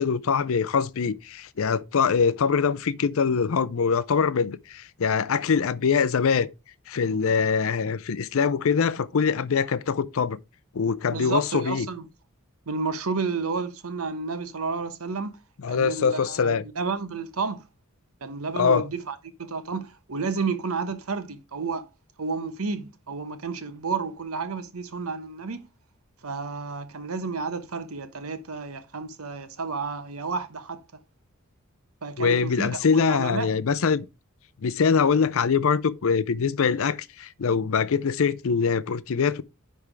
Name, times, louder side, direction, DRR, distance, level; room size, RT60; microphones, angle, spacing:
voice 1, 0.0-6.5 6.9-10.4 10.7-11.9 15.6-16.6 18.6-18.9 32.2-34.0 34.6-39.4, left 6 dB, 70° left, 0.5 m, -23 dB
voice 2, 11.1-12.1 12.7-15.3 15.7-17.6 18.2-21.8 22.2-25.7 26.2-30.8 32.0-33.5, right 4 dB, 85° right, 1.0 m, -31 dB
9.9 x 3.5 x 4.6 m
head